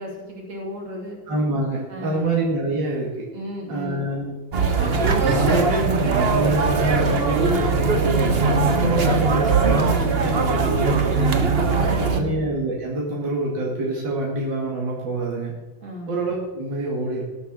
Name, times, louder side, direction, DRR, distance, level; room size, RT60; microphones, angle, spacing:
voice 1, 0.0-1.2 1.9-2.3 3.3-4.0 11.8-12.3 15.8-16.2, equal, 85° right, -1 dB, 3.9 m, -35 dB
voice 2, 1.3-3.3 3.7-4.3 4.7-8.4 8.7-11.6 12.0-15.5 16.1-17.2, right 2 dB, 70° right, -3 dB, 3.0 m, -26 dB
sound 1, 4.5-12.2, right 4 dB, 40° right, 1.1 m, -20 dB
18.5 x 7.0 x 6.3 m, 1.1 s
omnidirectional pair, 2.1 m